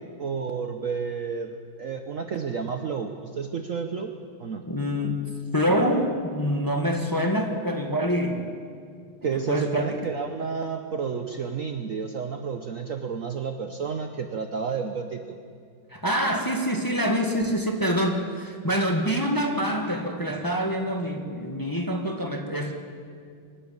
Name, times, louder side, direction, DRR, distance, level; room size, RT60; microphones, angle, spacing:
voice 1, 0.0-4.1 4.4-4.6 5.8-5.9 9.2-15.3, right 6 dB, 50° right, 6 dB, 1.1 m, -31 dB
voice 2, 4.7-5.3 5.5-8.5 9.2-10.0 15.9-22.7, equal, 10° left, 2 dB, 1.5 m, -26 dB
23.5 x 13.0 x 8.7 m, 2.2 s
omnidirectional pair, 2.1 m